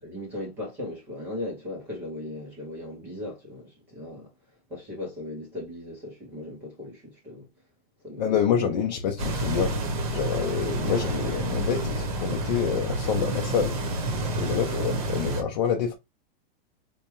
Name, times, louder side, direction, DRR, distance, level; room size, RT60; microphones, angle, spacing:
voice 1, 0.0-4.3 4.7-7.5 8.0-8.7 14.5-14.9, left 1 dB, 5° right, 0.5 m, -37 dB
voice 2, 8.2-9.8 10.1-13.8 14.4-16.0, left 7 dB, 45° left, 0.5 m, -27 dB
sound 1, 9.2-15.4, right 1 dB, 35° right, 0.8 m, -29 dB
4.6 x 2.1 x 2.9 m
supercardioid pair, 180°, 30 cm